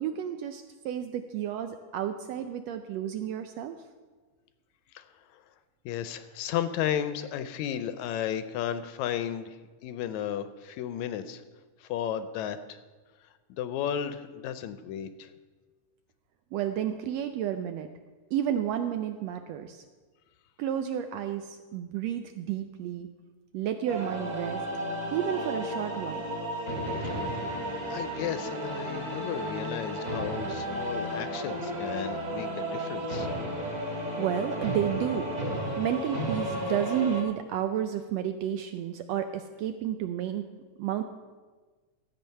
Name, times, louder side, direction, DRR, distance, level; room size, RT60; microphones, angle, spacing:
voice 1, 0.0-3.8 16.5-17.9 18.3-19.8 20.6-23.1 23.5-24.6 25.1-26.3 34.2-35.3 35.8-40.5 40.8-41.0, right 10 dB, 80° right, 8 dB, 1.5 m, -31 dB
voice 2, 5.9-11.4 11.8-12.8 13.5-15.3 27.9-33.3, left 10 dB, 80° left, 11 dB, 1.9 m, -34 dB
sound 1, 23.9-37.2, equal, 25° right, 1.0 m, -33 dB
13.5 x 7.9 x 5.6 m, 1.3 s
omnidirectional pair, 3.4 m